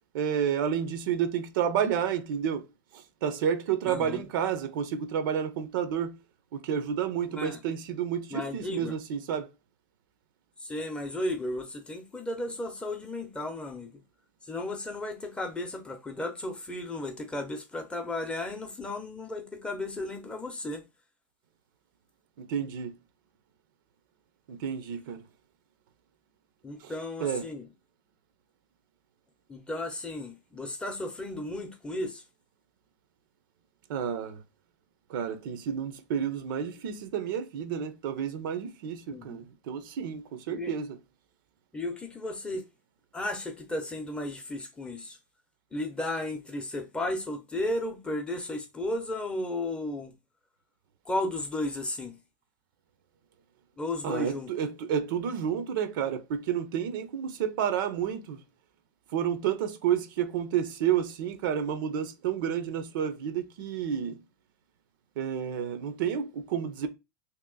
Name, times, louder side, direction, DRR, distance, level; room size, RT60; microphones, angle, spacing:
voice 1, 0.1-2.6 2.9-6.2 6.5-9.5 22.4-22.9 24.5-25.2 26.8-26.9 27.2-27.4 33.9-34.4 35.1-40.9 54.0-58.4 59.1-64.2 65.2-66.9, right 8 dB, 85° right, 0.7 m, -30 dB
voice 2, 3.8-4.3 7.3-7.6 8.3-8.9 10.6-13.9 14.5-20.8 26.6-27.7 29.5-32.2 39.1-39.4 40.5-40.7 41.7-42.6 43.1-45.2 45.7-50.1 51.1-52.2 53.8-54.5, left 1 dB, 10° left, 0.6 m, -34 dB
3.0 x 2.9 x 3.8 m
supercardioid pair, 150°, 11 cm